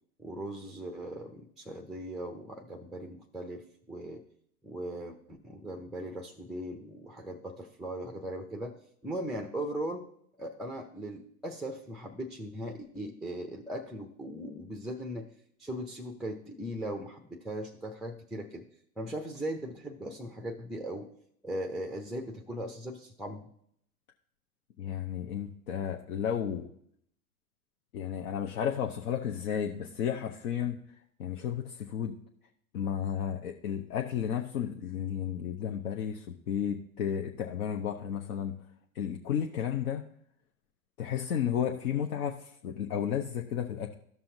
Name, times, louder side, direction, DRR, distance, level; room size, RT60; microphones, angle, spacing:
voice 1, 0.2-4.2 4.6-8.8 9.0-10.1 10.4-15.3 15.6-18.7 19.0-21.1 21.4-23.5, right 1 dB, ahead, 4 dB, 0.4 m, -39 dB
voice 2, 24.8-26.7 27.9-30.8 31.2-32.2 32.7-38.5 38.9-40.1 41.0-43.9, left 9 dB, 75° left, 2 dB, 0.9 m, -33 dB
14.0 x 5.6 x 2.6 m, 0.68 s
hypercardioid pair, 100°, 44 cm